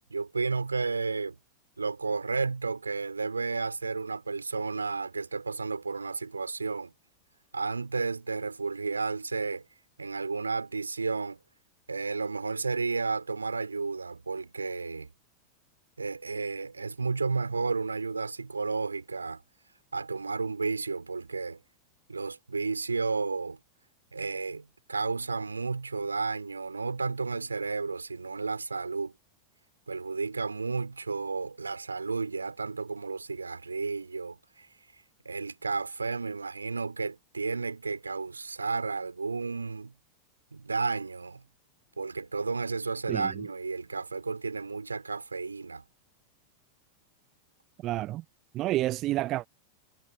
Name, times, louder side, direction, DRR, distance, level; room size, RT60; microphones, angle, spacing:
voice 1, 0.1-1.4 1.8-6.9 7.5-9.6 10.0-11.4 11.9-15.1 16.0-19.4 19.9-21.6 22.1-23.6 24.1-29.1 29.9-34.7 35.2-39.9 40.5-41.4 42.0-45.8, right 4 dB, 80° right, 4.1 m, -32 dB
voice 2, 43.1-43.4 47.8-48.2 48.5-49.5, right 16 dB, 35° right, 0.6 m, -29 dB
figure-of-eight pair, 90°, 0 cm